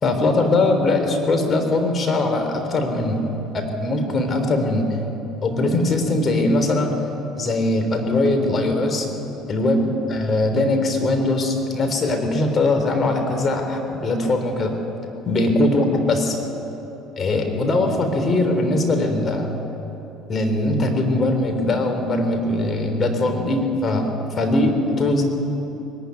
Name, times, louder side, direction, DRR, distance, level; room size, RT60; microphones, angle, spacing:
voice 1, 0.0-3.3 3.5-5.0 5.4-7.0 7.4-9.1 9.5-14.8 15.3-16.4 17.2-19.5 20.3-25.2, left 2 dB, 40° left, 5 dB, 3.8 m, -21 dB
21.0 x 13.0 x 9.6 m, 3.0 s
hypercardioid pair, 70°, 0 cm